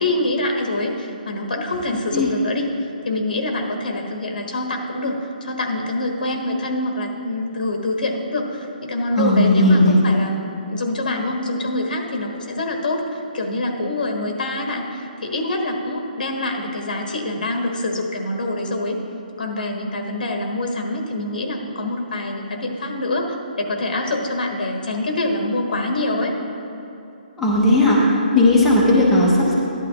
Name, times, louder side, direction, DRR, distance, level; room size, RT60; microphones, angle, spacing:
voice 1, 0.0-2.7 3.0-19.0 19.4-23.3 23.6-26.3, left 2 dB, 65° left, 2 dB, 1.4 m, -25 dB
voice 2, 9.2-9.9 27.4-28.0 28.3-29.6, left 2 dB, ahead, -8 dB, 0.8 m, -15 dB
12.5 x 11.5 x 2.9 m, 2.9 s
hypercardioid pair, 175°, 5 cm